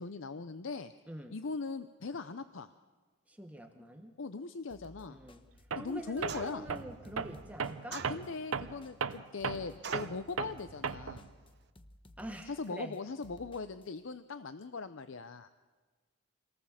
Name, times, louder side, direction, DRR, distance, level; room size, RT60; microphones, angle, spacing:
voice 1, 0.0-0.9 1.3-2.7 4.2-5.2 5.8-6.7 7.9-11.3 12.5-15.5, left 4 dB, 65° left, 11 dB, 0.6 m, -40 dB
voice 2, 3.3-4.1 5.1-5.4 5.7-8.0 12.2-13.0, equal, 5° right, 4 dB, 1.0 m, -46 dB
sound 1, 4.7-13.9, left 1 dB, 25° left, 1.0 m, -58 dB
Tools, 5.7-5.9 6.2-11.3, right 5 dB, 85° right, 0.8 m, -37 dB
sound 2, 6.3-6.8 7.9-8.6 9.8-10.2, right 6 dB, 55° right, 0.8 m, -43 dB
27.5 x 18.5 x 7.4 m, 1.4 s
head